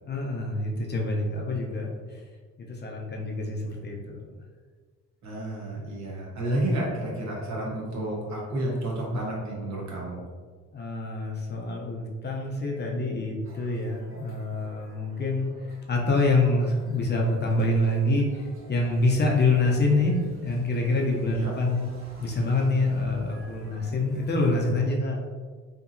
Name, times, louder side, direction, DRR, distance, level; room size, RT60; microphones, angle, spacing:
voice 1, 0.1-2.2 2.6-4.4 10.7-21.9 22.2-25.2, left 2 dB, 35° left, 0 dB, 0.5 m, -26 dB
voice 2, 5.2-10.2 21.3-21.5, right 1 dB, 65° right, -4 dB, 1.1 m, -30 dB
sound 1, 13.4-24.8, right 1 dB, 45° right, 0.7 m, -51 dB
2.8 x 2.6 x 2.6 m, 1.5 s
cardioid pair, 90°, 30 cm